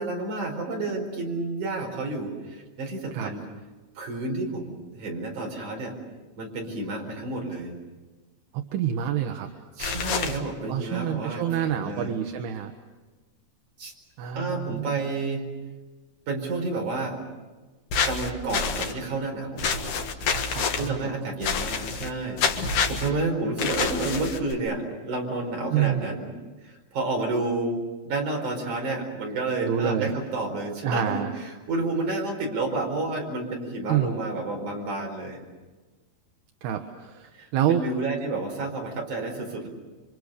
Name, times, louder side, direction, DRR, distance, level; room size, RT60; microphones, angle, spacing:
voice 1, 0.0-3.4 4.0-6.0 6.4-7.7 9.8-12.1 13.8-13.9 14.3-15.5 16.3-17.2 18.0-20.0 20.7-26.3 26.6-35.4 37.4-39.7, right 2 dB, 45° right, 1 dB, 5.8 m, -30 dB
voice 2, 8.5-9.5 10.7-12.7 14.2-15.0 20.3-21.1 25.7-26.0 29.6-30.1 30.8-31.3 33.9-34.1 36.6-37.9, right 10 dB, 70° right, 5 dB, 2.9 m, -27 dB
sound 1, 9.8-10.4 17.9-18.9 19.6-20.9 21.4-22.1 22.4-23.1 23.6-24.5, left 5 dB, 55° left, 2.5 m, -27 dB
29.5 x 25.0 x 6.7 m, 1.3 s
omnidirectional pair, 5.2 m